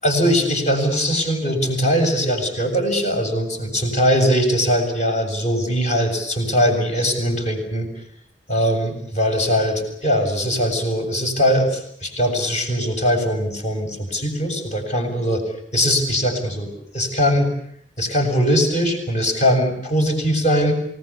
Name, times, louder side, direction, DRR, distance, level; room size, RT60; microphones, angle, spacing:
voice 1, 0.0-7.9 8.5-17.5 18.0-20.7, equal, 40° left, 4 dB, 7.5 m, -21 dB
28.5 x 20.0 x 8.5 m, 0.67 s
head